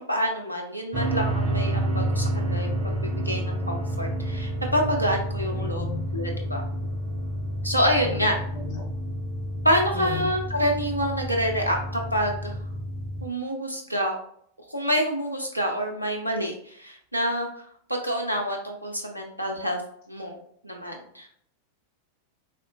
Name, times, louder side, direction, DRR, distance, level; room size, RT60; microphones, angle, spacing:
voice 1, 0.1-5.9 6.1-6.6 7.6-8.3 9.6-12.6 13.2-14.2 14.7-17.6 17.9-19.8 20.1-20.4 20.6-21.3, equal, 90° right, 1 dB, 0.4 m, -27 dB
sound 1, 0.9-13.3, right 1 dB, 25° right, 0.5 m, -29 dB
voice 2, 5.4-6.0 7.9-8.8 9.9-10.3, left 7 dB, 45° left, 0 dB, 0.6 m, -36 dB
3.4 x 2.1 x 2.4 m, 0.64 s
figure-of-eight pair, 90°, 0 cm